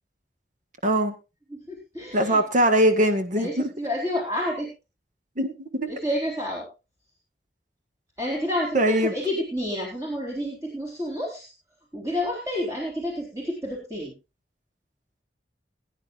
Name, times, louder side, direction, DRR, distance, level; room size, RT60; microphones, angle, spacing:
voice 1, 0.8-1.1 2.1-3.7 5.4-5.9 8.7-9.1, right 1 dB, 45° right, 6 dB, 1.7 m, -21 dB
voice 2, 1.5-2.4 3.4-4.7 5.9-6.7 8.2-11.5 11.9-14.1, left 1 dB, 20° right, -2 dB, 4.0 m, -29 dB
21.5 x 9.9 x 2.5 m, 0.28 s
head